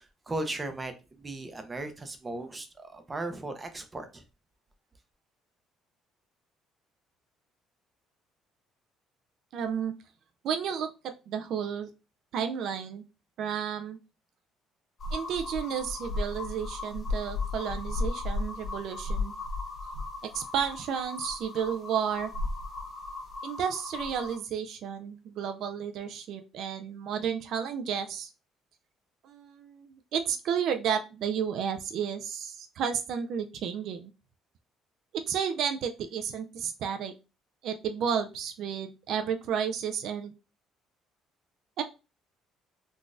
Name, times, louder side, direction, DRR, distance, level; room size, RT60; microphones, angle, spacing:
voice 1, 0.0-4.2, right 2 dB, 20° right, 0.6 m, -37 dB
voice 2, 9.5-9.9 10.4-11.9 12.3-13.0 13.4-14.0 15.1-19.3 20.2-22.3 23.4-28.3 29.2-34.1 35.1-37.1 37.6-40.3 41.8-41.9, right 7 dB, 65° right, 0.3 m, -32 dB
sound 1, 15.0-24.4, left 3 dB, 40° left, 1.1 m, -35 dB
3.8 x 2.4 x 2.5 m
cardioid pair, 105°, 0 cm